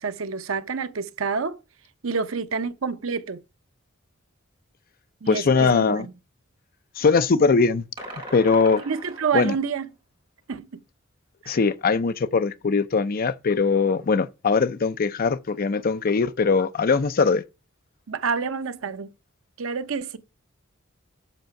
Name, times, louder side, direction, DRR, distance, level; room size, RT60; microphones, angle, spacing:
voice 1, 0.0-1.6 2.0-3.4 5.2-6.1 8.9-9.9 10.5-10.7 11.4-11.6 18.1-19.1 19.6-20.2, right 5 dB, 80° right, 0.7 m, -28 dB
voice 2, 5.3-6.1 7.0-7.8 8.3-8.8 9.3-9.6 11.5-17.4, left 4 dB, 45° left, 0.5 m, -21 dB
sound 1, 8.0-9.7, right 1 dB, 25° right, 5.6 m, -39 dB
7.9 x 6.6 x 5.7 m
head